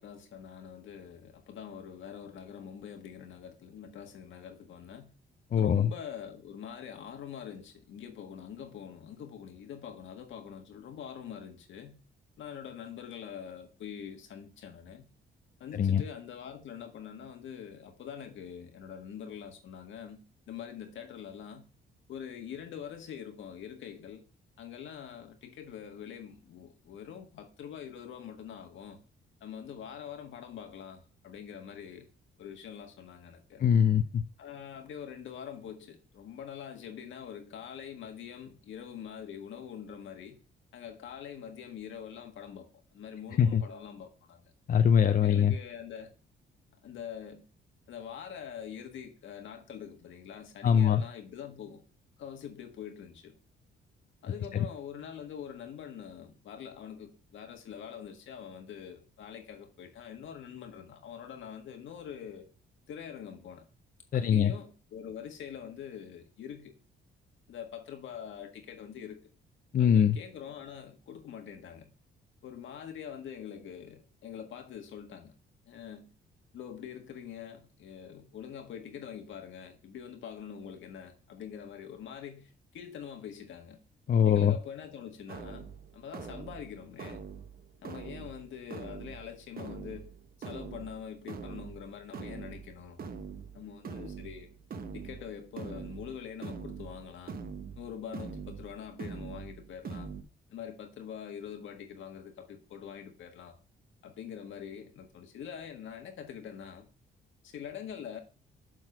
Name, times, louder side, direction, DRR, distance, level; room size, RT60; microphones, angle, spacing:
voice 1, 0.0-5.1 5.5-12.0 12.4-15.1 15.6-21.7 22.1-24.2 24.6-29.0 29.4-32.1 32.4-33.6 34.4-40.4 40.7-44.5 45.2-46.1 46.8-47.4 47.9-51.8 52.2-53.3 54.2-62.5 62.9-63.6 64.1-66.7 67.5-69.2 69.8-71.9 72.4-75.3 75.6-76.1 76.5-83.8 84.2-87.2 87.8-90.1 90.4-93.0 93.5-94.5 94.9-97.4 97.8-100.1 100.5-103.6 104.0-106.9 107.4-108.2, left 8 dB, 75° left, 1.7 m, -44 dB
voice 2, 5.5-5.9 15.8-16.0 33.6-34.2 43.4-43.6 44.7-45.5 50.6-51.0 64.1-64.5 69.7-70.2 84.1-84.5, left 8 dB, 45° left, 0.6 m, -23 dB
sound 1, 85.3-100.2, right 5 dB, 50° right, 1.0 m, -44 dB
7.5 x 3.9 x 6.1 m
cardioid pair, 90°, 20 cm